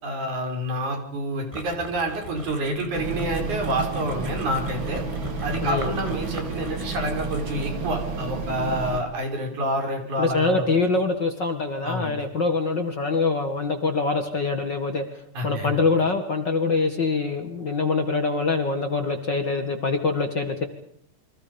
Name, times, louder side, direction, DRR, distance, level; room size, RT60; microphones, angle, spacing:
voice 1, 0.0-5.0 5.4-10.7 11.8-12.1 15.3-15.8, right 1 dB, 70° right, 4 dB, 6.0 m, -28 dB
sound 1, 1.5-7.8, right 1 dB, 15° right, 1.6 m, -41 dB
sound 2, 2.9-9.0, right 4 dB, 40° right, 2.9 m, -31 dB
voice 2, 5.6-5.9 10.2-20.6, left 3 dB, 40° left, 6 dB, 2.1 m, -24 dB
29.0 x 25.0 x 5.3 m, 0.64 s
omnidirectional pair, 3.6 m